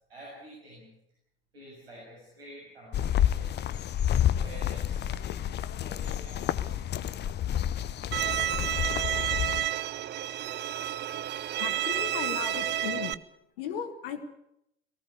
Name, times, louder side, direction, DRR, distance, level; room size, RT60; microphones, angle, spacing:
voice 1, 0.1-0.9 1.5-3.6 4.4-6.7, equal, 80° right, -5 dB, 6.9 m, -49 dB
sound 1, 2.9-9.7, left 10 dB, 35° left, 0.9 m, -29 dB
Bowed string instrument, 8.1-13.1, right 11 dB, 35° right, 0.8 m, -30 dB
voice 2, 11.6-13.1 13.6-14.3, left 8 dB, 65° left, 6 dB, 1.9 m, -36 dB
18.5 x 18.0 x 8.2 m, 0.78 s
figure-of-eight pair, 65°, 30 cm